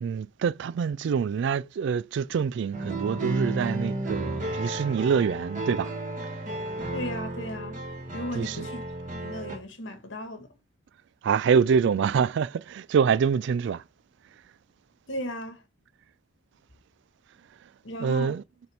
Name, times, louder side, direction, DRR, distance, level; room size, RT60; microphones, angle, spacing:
voice 1, 0.0-5.9 8.3-8.7 11.2-13.8 18.0-18.4, right 6 dB, 65° right, 0.3 m, -25 dB
sound 1, 2.7-9.6, right 2 dB, 40° right, 1.5 m, -33 dB
voice 2, 6.9-7.8 8.1-8.8 9.1-10.5 15.1-15.6 17.8-18.4, left 1 dB, 70° left, 1.5 m, -36 dB
6.6 x 4.3 x 3.4 m
head